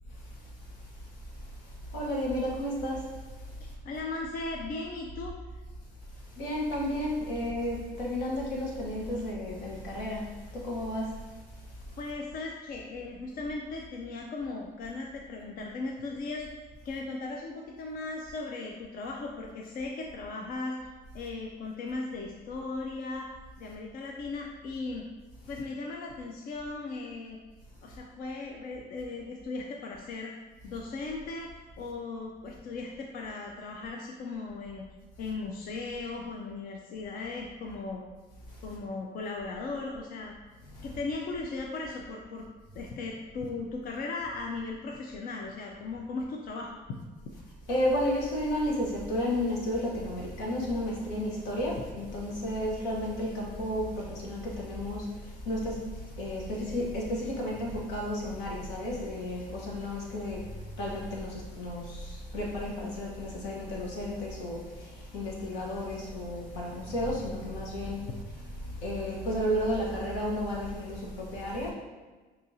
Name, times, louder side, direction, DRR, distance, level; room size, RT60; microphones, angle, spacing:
voice 1, 0.1-3.8 6.1-12.0 25.4-25.6 27.9-28.0 35.2-35.3 38.5-38.8 40.6-41.0 42.8-42.9 47.3-71.7, left 1 dB, 90° left, -3 dB, 1.2 m, -33 dB
voice 2, 3.8-5.3 12.0-16.4 16.8-20.7 21.1-23.3 23.6-25.1 25.5-27.4 27.8-30.3 30.6-34.8 35.2-38.0 38.6-40.3 40.8-42.5 42.7-47.0 47.2-47.3, left 3 dB, 60° left, 0 dB, 0.5 m, -37 dB
6.1 x 2.8 x 2.7 m, 1.3 s
cardioid pair, 110°, 17 cm